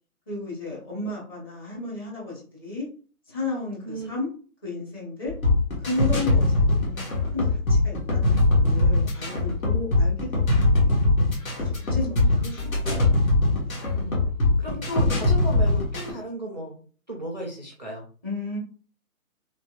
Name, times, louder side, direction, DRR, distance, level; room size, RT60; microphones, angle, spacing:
voice 1, 0.3-2.9 3.3-4.3 4.6-5.3 5.8-10.4 10.8-11.1 11.6-12.2 12.6-12.9 13.6-13.9 18.2-18.6, left 3 dB, 15° left, -5 dB, 0.8 m, -33 dB
sound 1, 5.3-16.1, left 2 dB, 65° left, 1.3 m, -21 dB
voice 2, 11.9-13.2 13.9-14.2 14.6-16.8 17.1-18.1, right 1 dB, 35° right, -1 dB, 0.4 m, -35 dB
3.0 x 2.7 x 2.3 m, 0.41 s
figure-of-eight pair, 140°, 44 cm